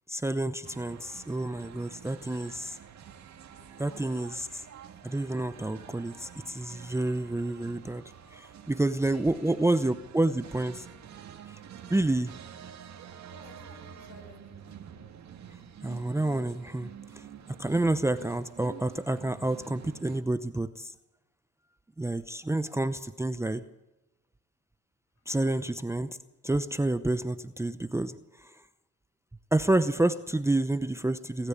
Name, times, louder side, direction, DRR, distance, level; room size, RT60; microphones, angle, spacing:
voice 1, 0.1-2.8 3.8-4.6 5.0-8.0 8.3-10.9 11.5-11.6 11.9-12.3 15.8-20.9 22.0-23.6 25.3-26.2 26.4-28.6 29.5-31.5, right 2 dB, 10° right, 11 dB, 0.7 m, -29 dB
sound 1, 0.6-20.2, right 8 dB, 65° right, 2.2 m, -48 dB
voice 2, 3.5-4.6 9.0-10.4 13.3-15.1 25.2-25.3, left 4 dB, 60° left, 4 dB, 7.2 m, -54 dB
23.5 x 13.5 x 8.4 m, 0.99 s
cardioid pair, 90°, 30 cm